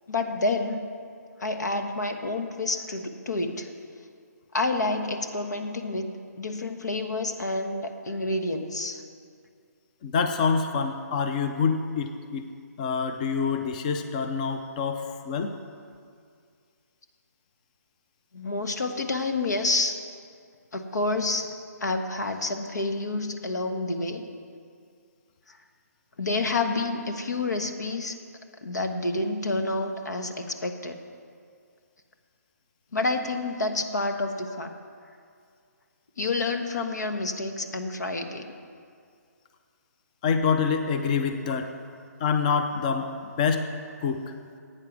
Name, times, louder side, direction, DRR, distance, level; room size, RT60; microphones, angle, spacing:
voice 1, 0.1-0.9 1.4-3.7 4.5-9.0 18.3-20.0 20.7-21.5 21.8-24.3 25.5-25.6 26.2-28.2 28.6-31.0 32.9-34.7 36.2-38.5, left 2 dB, 85° left, 6 dB, 1.2 m, -29 dB
voice 2, 10.0-12.5 12.8-15.5 40.2-41.7 42.2-43.1 43.4-43.6 44.0-44.2, left 5 dB, 25° left, 7 dB, 0.5 m, -26 dB
11.0 x 8.6 x 6.1 m, 2.2 s
hypercardioid pair, 160°, 9 cm